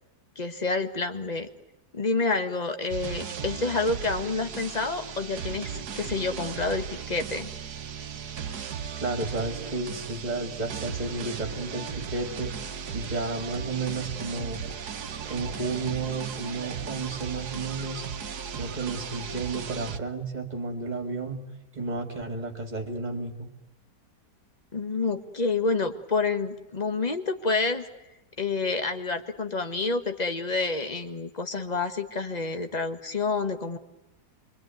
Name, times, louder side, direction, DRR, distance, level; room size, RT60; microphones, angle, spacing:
voice 1, 0.3-1.5 1.9-7.5 24.7-27.9 28.4-33.8, left 3 dB, 25° left, 8 dB, 1.5 m, -28 dB
sound 1, 2.9-20.0, right 7 dB, 70° right, 1.6 m, -36 dB
voice 2, 8.9-12.5 12.9-14.6 15.2-18.0 18.5-21.4 21.7-23.5, right 3 dB, 25° right, 4 dB, 2.7 m, -32 dB
26.0 x 23.5 x 9.4 m, 0.98 s
omnidirectional pair, 1.8 m